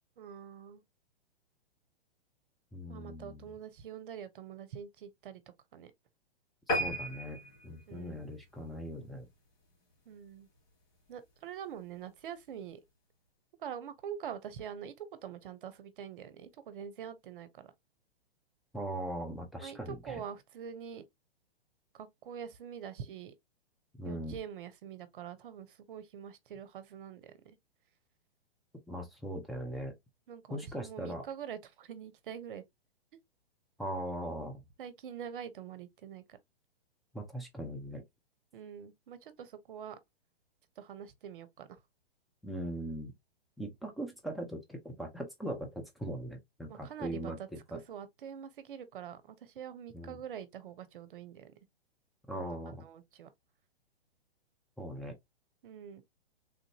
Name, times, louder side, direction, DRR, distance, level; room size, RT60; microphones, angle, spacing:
voice 1, 0.2-0.8 2.9-5.4 5.7-5.9 7.9-8.2 10.1-10.5 11.1-12.8 13.6-17.7 19.6-21.0 21.9-23.3 24.0-27.6 30.3-32.6 34.8-36.4 38.5-40.0 40.8-41.8 46.7-47.5 47.9-51.5 52.3-53.3 55.6-56.0, right 8 dB, 55° right, 0.8 m, -45 dB
voice 2, 2.7-3.5 6.7-9.3 18.7-20.2 24.0-24.4 28.9-30.0 30.5-31.3 33.8-34.6 37.1-38.0 42.4-43.1 43.6-47.8 49.9-50.2 52.3-52.8 54.8-55.2, right 1 dB, ahead, 0.6 m, -40 dB
sound 1, 6.7-9.4 9.9-10.1 10.6-10.7 11.0-11.1 11.3-11.4, equal, 50° left, 1.7 m, -36 dB
3.5 x 2.5 x 2.9 m
hypercardioid pair, 120°, 31 cm